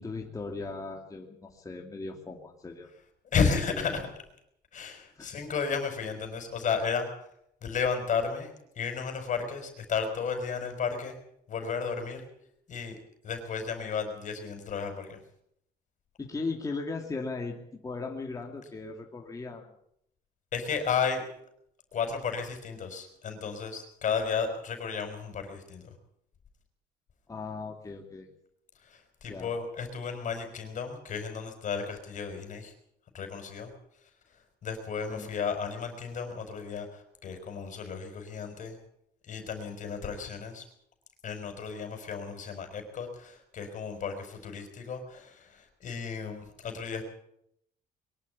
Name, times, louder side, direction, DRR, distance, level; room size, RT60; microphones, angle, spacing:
voice 1, 0.0-2.9 3.7-4.0 5.2-5.3 16.2-17.6 17.8-19.7 27.3-28.3 29.3-29.5 35.1-35.3, left 3 dB, 20° left, 1 dB, 2.6 m, -37 dB
voice 2, 3.2-4.1 4.7-7.1 7.6-11.2 11.5-12.3 12.7-13.0 13.2-15.2 20.5-21.2 21.9-26.0 28.8-32.7 33.1-33.7 34.0-38.8 39.2-40.7 41.2-47.0, left 6 dB, 50° left, 5 dB, 5.2 m, -33 dB
22.5 x 12.0 x 9.9 m, 0.75 s
cardioid pair, 110°, 17 cm